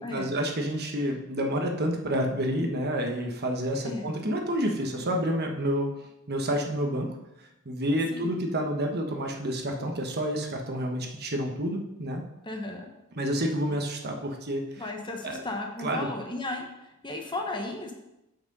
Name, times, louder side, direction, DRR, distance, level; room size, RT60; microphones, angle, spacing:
voice 1, 0.0-5.9 6.3-7.1 7.4-12.2 13.1-14.9 15.2-15.4 15.8-16.1, equal, 50° right, 2 dB, 1.3 m, -29 dB
voice 2, 12.5-12.9 14.8-16.7 17.0-17.9, left 2 dB, 20° left, 3 dB, 1.1 m, -34 dB
8.2 x 6.1 x 5.4 m, 0.90 s
head